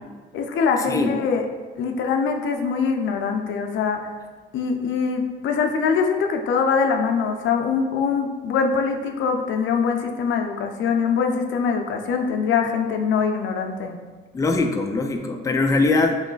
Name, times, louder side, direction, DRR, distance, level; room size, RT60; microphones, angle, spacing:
voice 1, 0.3-1.5 1.8-4.0 4.5-14.0, left 5 dB, 75° left, 4 dB, 0.5 m, -23 dB
voice 2, 14.3-16.2, left 3 dB, 15° left, 3 dB, 0.4 m, -21 dB
3.1 x 3.1 x 3.8 m, 1.4 s
cardioid pair, 90°, 20 cm